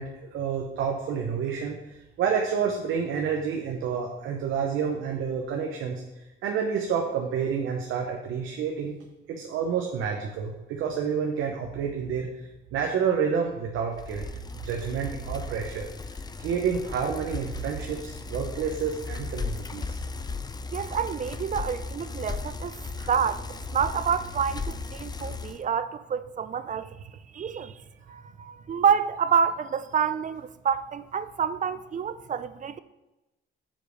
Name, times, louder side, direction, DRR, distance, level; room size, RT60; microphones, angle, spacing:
voice 1, 0.0-1.8 2.2-6.0 6.4-9.0 9.3-12.3 12.7-14.3 14.5-15.9 16.4-20.0 23.0-23.1, right 6 dB, 85° right, 0.9 m, -29 dB
Bicycle, 13.9-25.6, left 4 dB, 20° left, 0.4 m, -36 dB
voice 2, 20.7-22.8 23.1-23.4 23.7-26.9 27.3-27.7 28.1-32.8, right 7 dB, 40° right, 0.5 m, -28 dB
7.4 x 4.9 x 5.1 m
cardioid pair, 90°, 20 cm